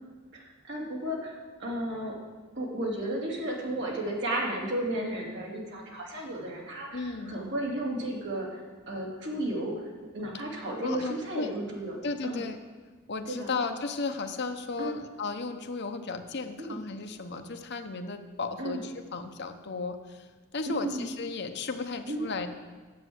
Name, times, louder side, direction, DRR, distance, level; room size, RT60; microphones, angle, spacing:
voice 1, 0.3-2.1 2.5-8.6 8.9-12.0 12.2-12.4 13.3-13.5 14.8-14.9 16.6-16.8 18.6-18.8 20.7-21.0 22.1-22.3, right 1 dB, 60° right, -3 dB, 2.8 m, -33 dB
voice 2, 6.9-7.4 10.8-11.5 12.0-12.6 13.1-20.3 20.5-22.5, left 4 dB, 55° left, 7 dB, 0.9 m, -34 dB
9.7 x 8.0 x 7.8 m, 1.4 s
head